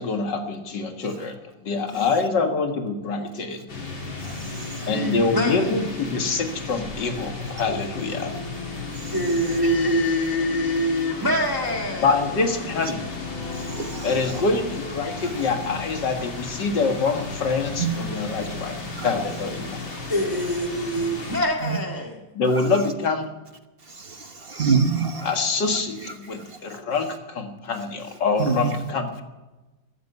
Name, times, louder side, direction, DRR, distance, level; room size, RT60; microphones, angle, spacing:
voice 1, 0.0-1.4 1.6-3.6 4.9-8.3 12.0-13.0 14.0-18.8 19.0-19.8 22.4-23.3 25.2-29.2, left 4 dB, 65° left, 5 dB, 2.4 m, -25 dB
voice 2, 1.7-2.0 4.9-5.8 9.0-12.1 19.2-19.3 19.8-22.2, equal, 10° right, 1 dB, 1.9 m, -25 dB
sound 1, 3.7-21.4, left 3 dB, 85° left, 3.9 m, -34 dB
voice 3, 4.2-4.6 9.0-9.1 13.6-14.3 17.8-18.0 19.0-19.1 21.6-21.8 24.0-25.3 28.4-28.8, right 5 dB, 40° right, 7 dB, 1.0 m, -26 dB
15.0 x 13.5 x 6.9 m, 1.1 s
omnidirectional pair, 2.1 m